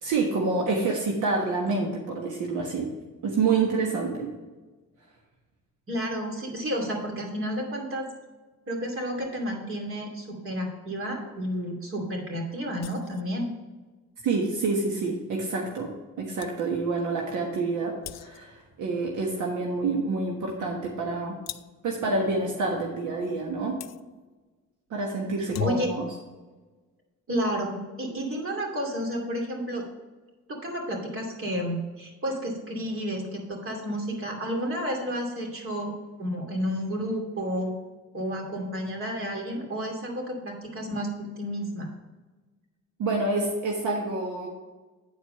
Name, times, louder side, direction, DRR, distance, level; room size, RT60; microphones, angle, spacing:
voice 1, 0.0-2.9 3.2-4.3 14.2-15.9 16.2-21.4 21.8-23.7 24.9-26.1 43.0-44.5, right 3 dB, 80° right, 0 dB, 1.3 m, -27 dB
voice 2, 5.9-8.1 8.7-13.5 25.4-25.9 27.3-29.8 30.5-35.9 36.2-37.7 38.1-41.9, equal, 45° right, 0 dB, 2.7 m, -31 dB
sound 1, 12.8-13.3 16.0-16.1 16.4-16.6 18.0-18.6 21.5-21.9 23.8-24.0 25.3-26.1, left 10 dB, 60° left, 0.4 m, -37 dB
9.5 x 4.6 x 5.6 m, 1.2 s
cardioid pair, 90°, 30 cm